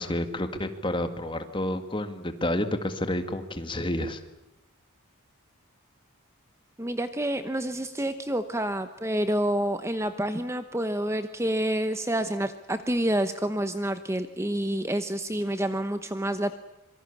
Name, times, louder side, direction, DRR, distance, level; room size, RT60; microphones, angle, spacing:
voice 1, 0.0-4.2, left 1 dB, 20° left, 8 dB, 2.0 m, -30 dB
voice 2, 6.8-16.6, right 1 dB, 10° right, 10 dB, 0.9 m, -28 dB
26.0 x 23.5 x 8.5 m, 0.91 s
head